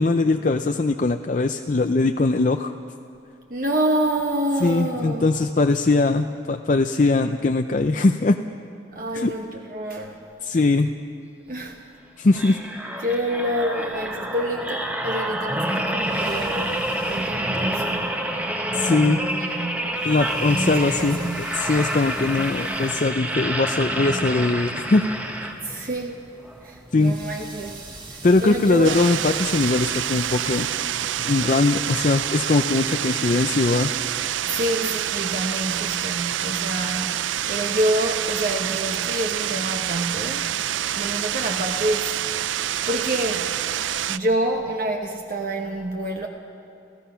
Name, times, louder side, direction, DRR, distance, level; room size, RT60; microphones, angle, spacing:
voice 1, 0.0-2.7 4.6-8.4 9.1-9.3 10.4-10.9 12.2-12.6 18.7-19.2 20.0-25.0 25.4-25.6 26.9-27.2 28.2-30.7 31.2-33.9, left 3 dB, 40° left, 6 dB, 0.5 m, -21 dB
voice 2, 3.5-5.4 8.9-10.2 11.5-11.8 13.0-16.6 17.1-18.3 18.7-20.1 20.5-21.6 25.6-26.2 26.6-27.8 28.1-29.0 34.4-40.5 40.9-42.5 42.8-43.6 44.1-46.3, right 1 dB, 45° right, 2 dB, 1.1 m, -27 dB
sound 1, 12.3-25.9 26.4-26.6, right 1 dB, 10° right, 1.1 m, -28 dB
sound 2, 15.7-32.5, right 2 dB, 25° right, 1.7 m, -44 dB
sound 3, 28.8-44.2, right 11 dB, 90° right, 0.4 m, -27 dB
28.5 x 16.0 x 5.7 m, 2.8 s
head